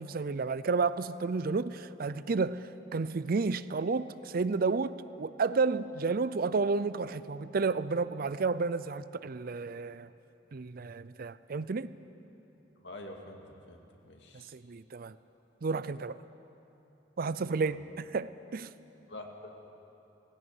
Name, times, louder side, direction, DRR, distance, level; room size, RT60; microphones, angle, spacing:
voice 1, 0.0-10.1 10.5-11.9 14.5-15.2 15.6-16.2 17.2-18.7, right 4 dB, 55° right, 15 dB, 0.5 m, -31 dB
voice 2, 12.8-14.5 17.5-17.8 19.1-19.5, left 1 dB, 70° left, 2 dB, 2.2 m, -47 dB
17.5 x 17.0 x 9.3 m, 2.9 s
head